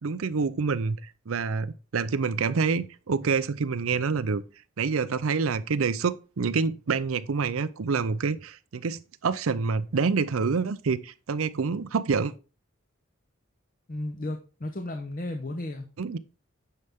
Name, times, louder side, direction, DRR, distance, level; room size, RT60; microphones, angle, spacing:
voice 1, 0.0-4.4 4.8-12.3 16.0-16.2, right 5 dB, 85° right, 0.5 m, -27 dB
voice 2, 13.9-15.9, left 1 dB, 40° left, 0.8 m, -34 dB
9.6 x 5.7 x 3.6 m
head